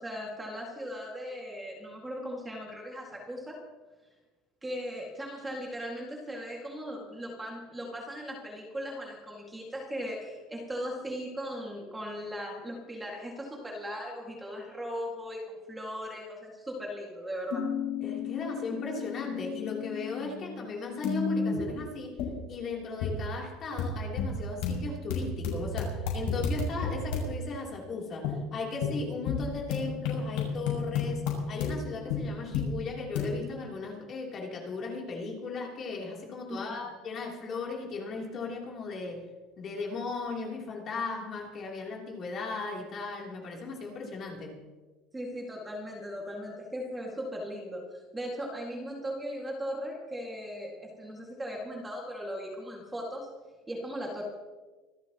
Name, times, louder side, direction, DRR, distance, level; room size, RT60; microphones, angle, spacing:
voice 1, 0.0-3.5 4.6-17.6 36.5-36.9 45.1-53.3 53.7-54.2, equal, 10° right, -2 dB, 2.1 m, -38 dB
sound 1, 17.5-20.7 21.0-21.7 22.2-22.3 23.0-23.1 23.8-23.9 24.2-24.3 24.6-27.2 28.2-28.3 28.8-28.9 29.3-29.8 30.1-31.7 32.1-32.2 32.5-32.6 33.2-33.3, left 7 dB, 70° left, 6.1 m, -31 dB
voice 2, 18.0-22.2 22.5-39.3 39.6-44.6, left 3 dB, 30° left, -1 dB, 3.2 m, -37 dB
25.5 x 13.0 x 3.0 m, 1.3 s
cardioid pair, 170°, 0 cm